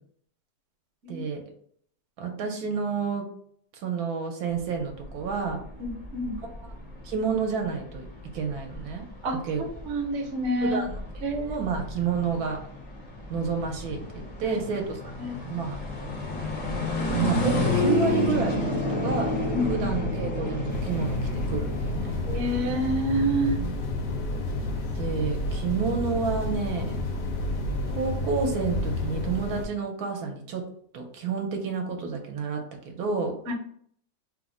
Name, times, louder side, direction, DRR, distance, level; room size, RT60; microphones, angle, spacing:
voice 1, 1.1-1.4 2.2-3.3 3.7-5.6 6.4-6.5 7.0-8.1 8.3-9.0 9.4-9.6 10.6-11.0 11.4-12.6 13.3-15.1 15.4-15.8 17.1-19.3 19.7-21.2 21.5-22.2 23.6-23.8 24.9-27.0 27.9-30.6 30.9-33.3, right 5 dB, 80° right, 2 dB, 1.1 m, -29 dB
sound 1, 4.6-23.5, left 2 dB, 55° left, 0.4 m, -31 dB
voice 2, 5.8-6.4 9.2-9.4 9.8-10.8 11.2-11.5 14.4-14.6 15.2-15.4 19.5-19.7 22.3-23.6 33.5-33.6, right 1 dB, 60° right, 1 dB, 0.9 m, -27 dB
sound 2, 20.7-29.7, left 2 dB, 70° left, 1.0 m, -30 dB
3.1 x 2.0 x 3.5 m, 0.64 s
omnidirectional pair, 1.6 m